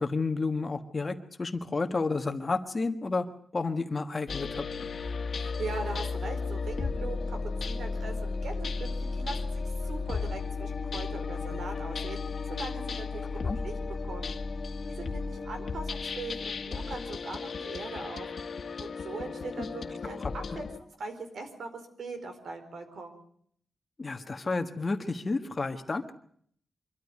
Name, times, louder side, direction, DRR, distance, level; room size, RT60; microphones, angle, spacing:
voice 1, 0.0-3.3 3.5-4.9 13.3-13.6 19.6-19.7 20.2-20.3 24.0-26.1, left 3 dB, 30° left, 7 dB, 1.4 m, -31 dB
sound 1, 4.3-20.8, left 4 dB, 50° left, 1.8 m, -34 dB
voice 2, 5.4-13.8 14.0-14.4 14.9-18.3 18.8-23.2, right 3 dB, 70° right, 6 dB, 4.5 m, -41 dB
25.0 x 13.0 x 9.6 m, 0.64 s
wide cardioid pair, 155°, 0 cm